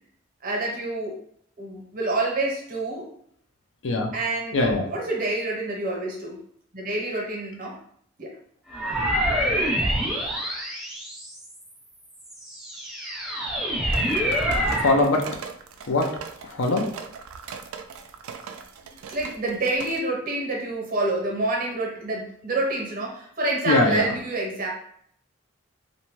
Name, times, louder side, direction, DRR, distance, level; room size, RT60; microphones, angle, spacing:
voice 1, 0.4-1.1 1.6-3.1 4.1-6.4 6.7-7.8 8.2-8.3 19.1-24.7, right 2 dB, 40° right, -2 dB, 0.8 m, -27 dB
voice 2, 3.8-4.1 4.5-4.9 14.8-15.4 15.9-17.0 23.7-24.1, left 2 dB, 65° left, 2 dB, 0.5 m, -22 dB
sound 1, 8.7-11.6 12.2-15.1, equal, 5° right, 0.6 m, -26 dB
sound 2, 13.9-20.0, right 6 dB, 85° right, 0.3 m, -39 dB
2.6 x 2.1 x 3.0 m, 0.65 s
head